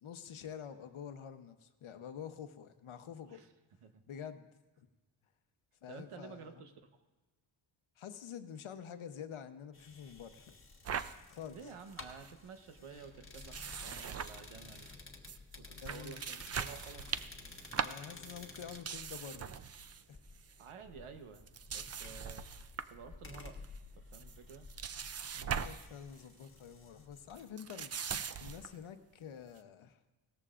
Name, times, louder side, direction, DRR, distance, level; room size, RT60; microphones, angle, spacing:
voice 1, 0.0-3.4 4.1-4.5 5.8-6.6 8.0-10.5 11.3-11.7 15.8-16.3 17.8-19.5 20.1-20.2 25.3-27.9 28.4-30.0, left 8 dB, 75° left, 9 dB, 0.9 m, -48 dB
voice 2, 5.8-7.0 11.5-14.9 15.6-17.1 20.6-22.5 22.9-23.6 23.9-24.7, right 6 dB, 85° right, 7 dB, 1.1 m, -52 dB
sound 1, 9.7-27.4, left 3 dB, 25° left, 1.4 m, -53 dB
sound 2, 10.8-11.1 11.6-11.7 11.9-12.3 13.3-14.9 15.3-15.4 15.8-20.0 20.3-20.6 21.3-23.0 23.4-23.8 24.1-25.9 26.2-26.4 27.4-28.8, right 7 dB, 35° right, 0.4 m, -41 dB
17.5 x 14.0 x 2.5 m, 1.2 s
wide cardioid pair, 115°, 49 cm